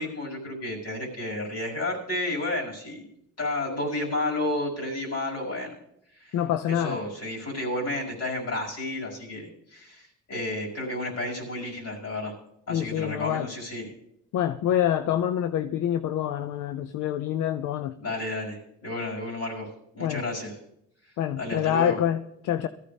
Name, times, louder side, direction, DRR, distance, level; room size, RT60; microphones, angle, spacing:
voice 1, 0.0-3.1 3.4-5.7 6.2-6.4 6.7-12.3 12.7-13.9 18.0-19.7 19.9-20.6 21.4-22.0, left 1 dB, 55° left, -3 dB, 5.4 m, -31 dB
voice 2, 6.3-7.0 12.7-13.5 14.3-17.9 20.0-20.2 21.2-22.7, left 11 dB, 80° left, 11 dB, 0.6 m, -26 dB
18.0 x 14.0 x 3.4 m, 0.78 s
cardioid pair, 90°, 30 cm